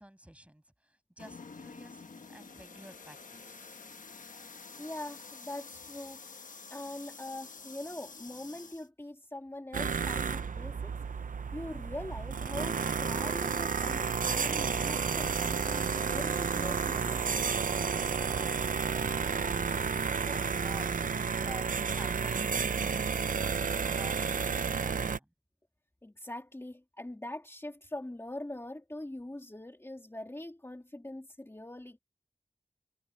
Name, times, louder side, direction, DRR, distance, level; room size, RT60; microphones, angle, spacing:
voice 1, 0.0-3.8 20.2-20.9 21.3-23.3, right 1 dB, 10° right, 7.5 m, -52 dB
sound 1, 1.2-8.9, left 4 dB, 80° left, 1.2 m, -49 dB
voice 2, 4.8-6.2 6.7-11.0 11.5-17.6 26.0-32.0, left 1 dB, 20° left, 2.6 m, -43 dB
sound 2, 9.7-25.2, right 6 dB, 85° right, 0.6 m, -31 dB
wide cardioid pair, 85°, 13 cm